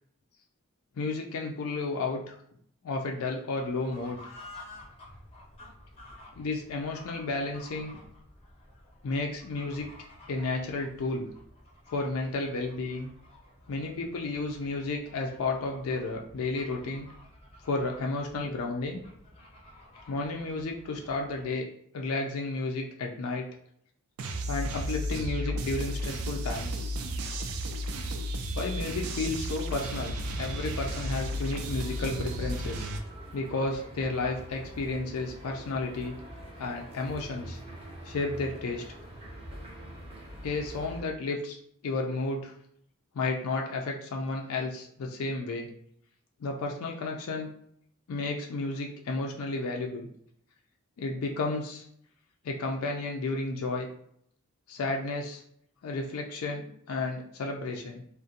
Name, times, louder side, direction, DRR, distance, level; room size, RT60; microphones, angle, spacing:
voice 1, 1.0-2.4 2.8-4.3 6.4-8.0 9.0-9.9 10.3-11.3 11.9-13.1 13.7-17.1 17.6-19.0 20.1-21.7 21.9-23.5 24.5-26.8 28.5-32.9 33.3-36.1 36.6-37.6 38.0-38.8 40.4-41.6 41.8-42.5 43.1-45.7 46.4-47.5 48.1-50.1 51.0-51.8 52.4-53.9 54.7-55.4 55.8-58.0, left 3 dB, 75° left, 1 dB, 0.4 m, -32 dB
Fowl / Bird, 3.6-21.6, left 1 dB, 25° left, 0.5 m, -52 dB
sound 1, 24.2-33.0, equal, 75° right, 0.3 m, -33 dB
sound 2, 29.4-41.0, equal, 25° right, 0.5 m, -45 dB
2.4 x 2.1 x 2.6 m, 0.68 s
head